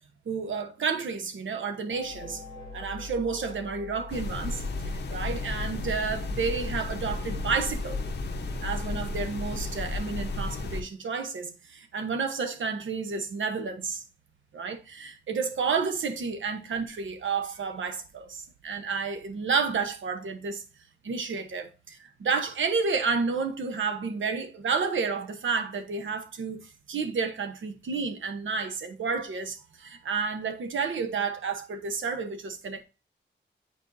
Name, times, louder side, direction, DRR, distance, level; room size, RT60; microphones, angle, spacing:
voice 1, 0.2-2.4 2.7-8.0 8.6-14.0 14.5-20.6 21.0-32.8, right 5 dB, 80° right, 1.0 m, -31 dB
sound 1, 1.9-5.7, left 4 dB, 30° right, 1.4 m, -44 dB
sound 2, 4.1-10.8, left 3 dB, 60° left, 0.9 m, -33 dB
8.8 x 4.5 x 2.7 m
wide cardioid pair, 140°, 20 cm